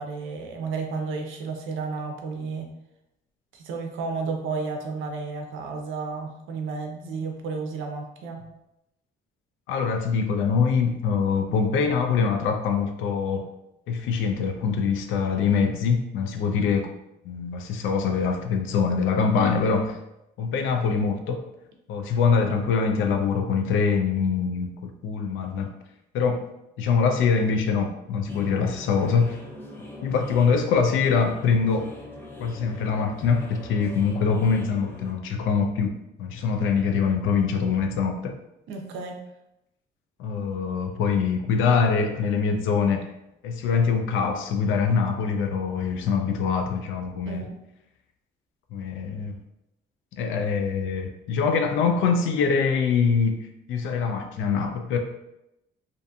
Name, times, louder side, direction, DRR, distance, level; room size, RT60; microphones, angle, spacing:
voice 1, 0.0-2.7 3.5-8.4 38.7-39.2 47.3-47.6, right 4 dB, 80° right, 3 dB, 0.5 m, -32 dB
voice 2, 9.7-13.4 13.9-16.9 17.2-20.0 20.4-21.4 21.9-25.7 26.1-26.4 26.8-29.4 30.0-31.9 32.4-38.4 40.2-43.0 43.4-47.5 48.7-49.4 50.1-55.0, left 5 dB, 80° left, 5 dB, 0.4 m, -24 dB
sound 1, 28.3-35.1, left 1 dB, 10° left, 0.5 m, -42 dB
2.6 x 2.5 x 2.3 m, 0.87 s
cardioid pair, 90°, 20 cm